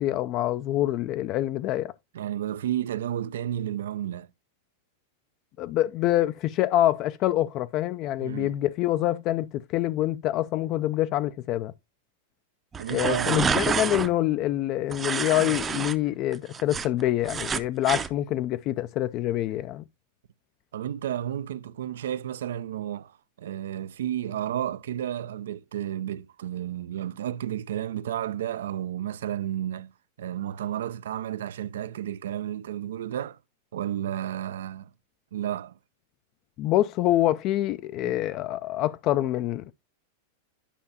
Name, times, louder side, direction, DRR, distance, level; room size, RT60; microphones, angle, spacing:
voice 1, 0.0-1.9 5.6-11.7 12.9-19.8 36.6-39.7, left 14 dB, 45° left, 0.3 m, -26 dB
voice 2, 2.1-4.3 8.2-8.5 12.8-13.5 20.7-29.9 30.2-33.4 33.7-34.9 35.3-35.8 38.0-38.2, right 11 dB, 80° right, 0.4 m, -32 dB
sound 1, 12.7-14.1 14.9-15.9 16.3-18.1, right 6 dB, 20° right, 0.5 m, -28 dB
9.9 x 5.4 x 2.7 m
hypercardioid pair, 115°, 0 cm